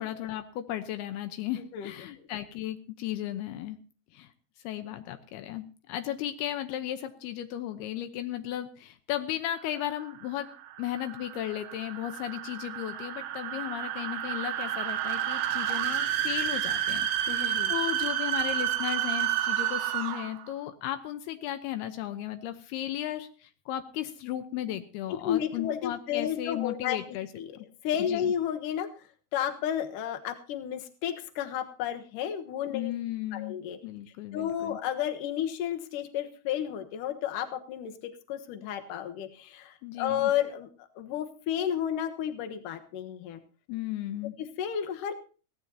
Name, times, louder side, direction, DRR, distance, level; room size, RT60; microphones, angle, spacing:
voice 1, 0.0-3.8 4.1-4.3 4.6-27.3 27.6-27.7 28.0-28.3 32.7-34.8 39.8-40.3 43.7-44.3, left 12 dB, 80° left, 9 dB, 2.8 m, -35 dB
sound 1, 9.8-20.4, right 11 dB, 85° right, 3.2 m, -30 dB
voice 2, 17.3-17.7 25.2-27.0 27.4-27.6 27.8-28.9 29.3-32.9 33.3-33.8 34.3-43.4 44.4-45.1, left 10 dB, 65° left, 6 dB, 2.6 m, -32 dB
21.5 x 16.5 x 2.8 m, 0.36 s
omnidirectional pair, 4.6 m